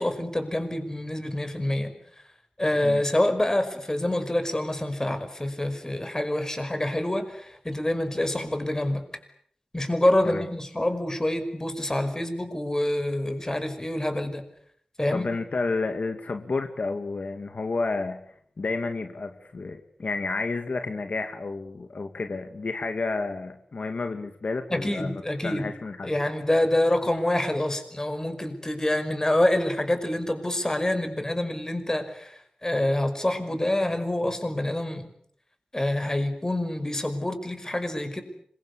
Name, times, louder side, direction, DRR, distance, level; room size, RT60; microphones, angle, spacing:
voice 1, 0.0-1.9 2.6-9.0 9.7-14.4 15.0-15.3 24.7-25.7 26.0-35.0 35.7-38.2, left 1 dB, 25° left, 8 dB, 5.5 m, -26 dB
voice 2, 15.1-18.2 18.6-26.1, left 3 dB, 75° left, 6 dB, 2.3 m, -31 dB
26.5 x 23.5 x 8.4 m, 0.64 s
wide cardioid pair, 60°, 2 cm